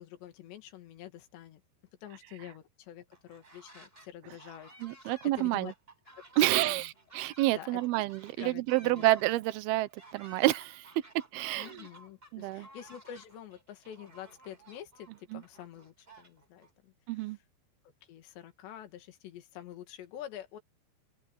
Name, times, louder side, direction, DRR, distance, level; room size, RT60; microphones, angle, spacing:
voice 1, 0.0-1.6 2.0-5.7 6.1-6.2 6.6-6.9 7.6-7.8 8.4-9.1 11.6-17.4 18.1-20.6, left 11 dB, 70° left, 4.2 m, -47 dB
sound 1, 3.1-4.1 4.4-16.7, right 2 dB, 10° right, 5.1 m, -55 dB
voice 2, 4.8-5.7 6.4-10.9 11.3-11.9 12.3-12.7 15.3-15.4 17.1-17.4, right 17 dB, 75° right, 2.5 m, -29 dB
open air
omnidirectional pair, 5.3 m